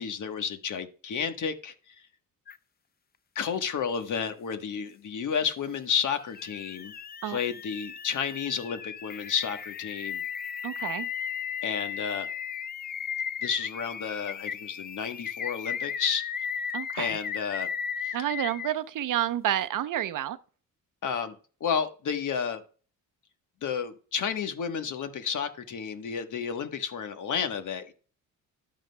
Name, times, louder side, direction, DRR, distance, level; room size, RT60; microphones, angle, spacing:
voice 1, 0.0-1.9 3.3-6.9 7.2-10.2 11.6-12.3 13.4-16.2 17.0-17.7 18.0-18.2 21.0-21.3 21.6-22.6 23.6-27.9, left 7 dB, 60° left, 1.3 m, -31 dB
sound 1, 2.5-2.6 5.9-18.8, left 7 dB, 30° left, 0.4 m, -36 dB
voice 2, 10.6-11.1 16.7-17.2 18.1-20.4, right 12 dB, 65° right, 0.7 m, -29 dB
11.5 x 8.8 x 2.2 m
cardioid pair, 85°, 34 cm